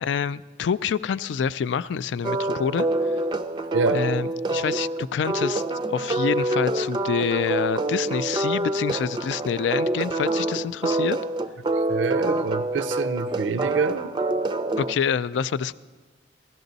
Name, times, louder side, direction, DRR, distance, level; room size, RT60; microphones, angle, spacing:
voice 1, 0.0-2.9 3.9-5.6 5.9-11.2 14.8-15.7, left 7 dB, 75° left, 17 dB, 0.3 m, -27 dB
sound 1, 2.2-14.9, right 2 dB, 25° right, 0.4 m, -26 dB
voice 2, 3.7-4.0 11.9-14.2, right 4 dB, 80° right, 13 dB, 0.5 m, -26 dB
15.5 x 13.5 x 4.0 m, 1.4 s
head